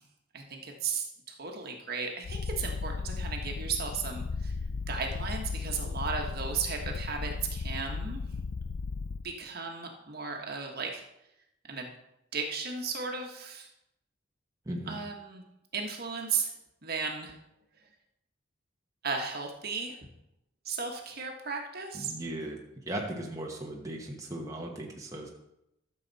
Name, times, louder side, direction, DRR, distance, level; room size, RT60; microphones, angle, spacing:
voice 1, 0.3-4.5 4.9-8.2 9.2-11.0 11.7-11.9 12.3-13.7 14.9-15.4 15.7-16.5 16.8-17.3 19.0-20.0 20.6-22.1, right 5 dB, 55° right, 2 dB, 1.4 m, -35 dB
Purr, 2.2-9.2, left 4 dB, 70° left, 0.5 m, -35 dB
voice 2, 14.7-15.0 22.0-22.6 22.9-25.3, right 1 dB, 15° right, -1 dB, 1.2 m, -37 dB
13.0 x 6.9 x 4.1 m, 0.85 s
head